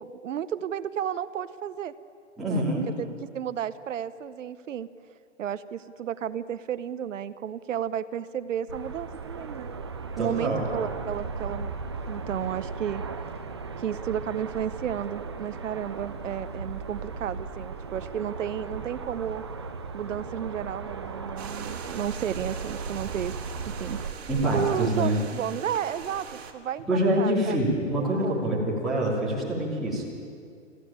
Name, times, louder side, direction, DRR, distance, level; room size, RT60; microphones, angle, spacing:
voice 1, 0.0-1.9 2.4-2.6 3.0-4.9 5.4-9.7 10.2-11.7 12.1-13.0 13.8-19.4 19.9-23.3 23.7-24.0 24.5-26.3 26.5-27.6 28.0-28.5, right 9 dB, 85° right, 13 dB, 0.9 m, -32 dB
voice 2, 2.4-2.8 10.2-10.6 24.3-25.2 26.9-30.0, right 1 dB, ahead, -9 dB, 3.1 m, -25 dB
sound 1, 8.7-24.1, right 4 dB, 25° right, 0.4 m, -37 dB
sound 2, 21.4-26.5, right 7 dB, 55° right, 2.3 m, -40 dB
21.5 x 15.0 x 8.9 m, 2.4 s
hypercardioid pair, 175°, 37 cm